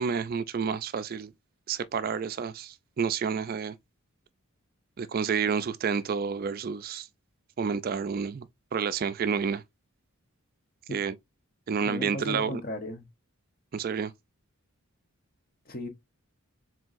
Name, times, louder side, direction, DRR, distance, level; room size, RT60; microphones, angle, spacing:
voice 1, 0.0-1.3 1.7-3.8 5.0-7.1 7.6-9.6 10.9-11.2 11.7-12.6 13.7-14.1, right 6 dB, 40° right, 0.3 m, -29 dB
voice 2, 11.8-13.0 15.7-15.9, left 1 dB, 45° left, 1.0 m, -36 dB
4.5 x 3.8 x 2.5 m
head